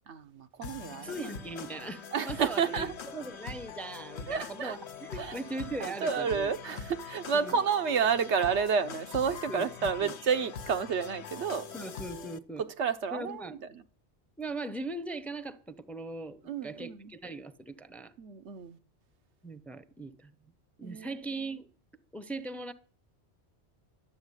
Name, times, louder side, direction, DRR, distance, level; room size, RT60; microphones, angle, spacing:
voice 1, 0.1-1.1 2.1-2.9 4.3-4.8 5.2-5.4 5.8-11.7 12.6-13.8 16.4-17.1 18.2-18.8 20.8-21.2, right 6 dB, 85° right, 1.2 m, -30 dB
sound 1, 0.6-12.4, left 6 dB, 75° left, 1.1 m, -43 dB
voice 2, 0.9-2.9 3.1-6.5 7.4-7.6 9.5-9.6 10.0-10.1 11.7-12.6 13.1-13.5 14.4-18.1 19.4-20.3 20.8-21.7 22.1-22.7, right 2 dB, ahead, 0.7 m, -39 dB
12.0 x 7.2 x 9.7 m
omnidirectional pair, 1.1 m